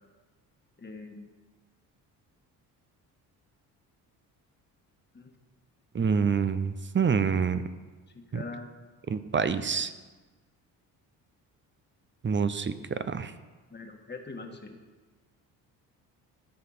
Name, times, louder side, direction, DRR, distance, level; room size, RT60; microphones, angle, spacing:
voice 1, 0.8-1.3 5.1-5.3 8.2-8.7 13.7-14.8, left 3 dB, 25° left, 4 dB, 1.7 m, -42 dB
voice 2, 5.9-7.6 8.3-8.4 9.1-9.9 12.2-13.3, right 6 dB, 25° right, 12 dB, 0.7 m, -27 dB
13.5 x 5.8 x 5.7 m, 1.3 s
supercardioid pair, 60°, 44 cm